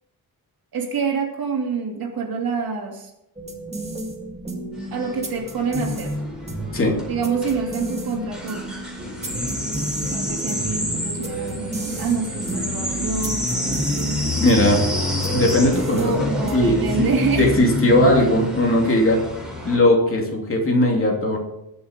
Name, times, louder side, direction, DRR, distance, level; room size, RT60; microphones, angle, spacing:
voice 1, 0.7-3.1 4.9-6.1 7.1-8.7 10.1-13.9 16.0-17.5, right 5 dB, 75° right, 2 dB, 3.0 m, -26 dB
sound 1, 3.4-16.8, right 1 dB, 15° right, 2.1 m, -32 dB
sound 2, 4.8-19.8, left 1 dB, ahead, 4.4 m, -28 dB
voice 2, 14.4-14.9 15.3-17.1 17.3-19.2 19.6-21.4, left 1 dB, 35° left, 0 dB, 3.1 m, -18 dB
20.5 x 7.0 x 5.3 m, 0.86 s
wide cardioid pair, 170°, 36 cm